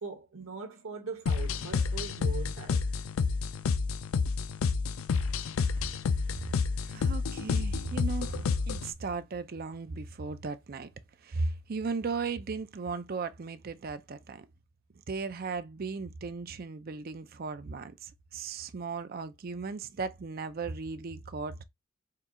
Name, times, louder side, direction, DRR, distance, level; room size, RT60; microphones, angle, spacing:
voice 1, 0.0-2.8 5.1-5.5, right 4 dB, 85° right, 1.1 m, -41 dB
sound 1, 1.3-8.9, left 5 dB, 80° left, 0.4 m, -30 dB
voice 2, 6.8-10.9 11.2-14.5 15.1-21.6, right 4 dB, 45° right, 0.5 m, -36 dB
4.4 x 2.3 x 3.6 m
head